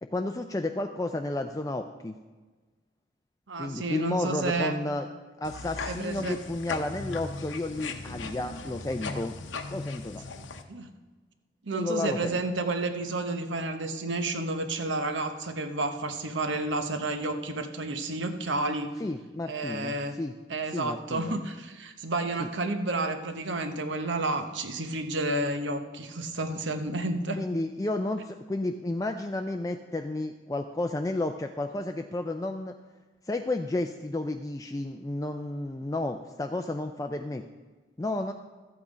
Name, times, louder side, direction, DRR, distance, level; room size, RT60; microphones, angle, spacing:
voice 1, 0.0-2.2 3.6-5.1 5.4-9.3 9.7-10.2 11.7-12.4 19.0-20.3 20.7-21.4 22.4-22.5 27.4-32.8 33.3-37.4 38.0-38.3, left 2 dB, 20° left, 5 dB, 0.3 m, -32 dB
voice 2, 3.5-4.8 5.9-6.4 10.4-10.9 11.7-18.9 19.5-20.2 20.5-27.4, right 2 dB, 75° right, 7 dB, 1.0 m, -31 dB
sound 1, 5.4-10.6, left 3 dB, 80° left, 0.8 m, -38 dB
13.5 x 8.4 x 5.0 m, 1.3 s
head